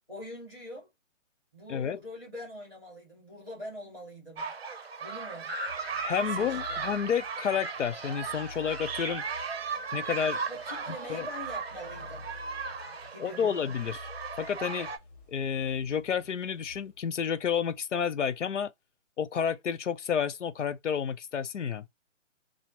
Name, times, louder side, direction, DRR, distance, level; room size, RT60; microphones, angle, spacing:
voice 1, 0.1-0.9 1.5-4.5 5.0-5.5 6.3-6.8 10.5-12.3 13.1-13.6, left 1 dB, ahead, 1.4 m, -43 dB
sound 1, 4.4-15.0, right 5 dB, 50° right, 0.6 m, -36 dB
sound 2, 5.7-17.5, left 3 dB, 30° left, 1.4 m, -51 dB
voice 2, 6.0-9.2 9.9-10.4 11.1-11.3 13.2-14.1 14.4-14.9 15.3-18.7 19.2-21.9, left 7 dB, 65° left, 0.5 m, -30 dB
3.2 x 2.0 x 2.8 m
hypercardioid pair, 175°, 39 cm